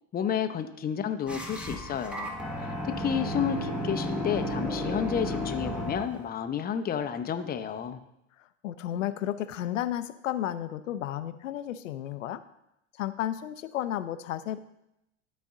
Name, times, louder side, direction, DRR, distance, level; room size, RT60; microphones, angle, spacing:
voice 1, 0.1-8.0, left 8 dB, 25° left, 8 dB, 0.7 m, -31 dB
sound 1, 1.3-6.2, equal, 5° right, 1.2 m, -33 dB
voice 2, 8.6-12.4 13.0-14.6, left 12 dB, 85° left, 13 dB, 0.6 m, -32 dB
13.0 x 4.3 x 3.7 m, 0.84 s
hypercardioid pair, 85°, 38 cm